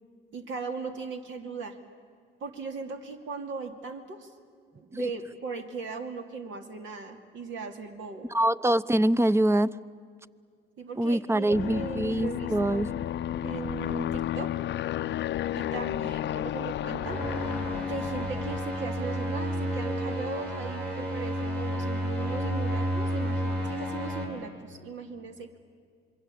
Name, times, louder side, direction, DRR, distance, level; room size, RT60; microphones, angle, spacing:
voice 1, 0.3-1.8 2.4-4.3 4.7-8.3 10.8-12.9 13.4-14.5 15.5-17.2 17.9-25.6, right 4 dB, 75° right, 5 dB, 2.5 m, -38 dB
voice 2, 8.3-9.7 11.0-13.0, right 1 dB, 15° right, 17 dB, 0.6 m, -24 dB
Aircraft, 11.5-18.8, left 12 dB, 65° left, 0.5 m, -32 dB
sound 1, 17.0-24.2, equal, 55° right, 7.2 m, -31 dB
27.0 x 22.5 x 8.5 m, 2.2 s
cardioid pair, 90°, 20 cm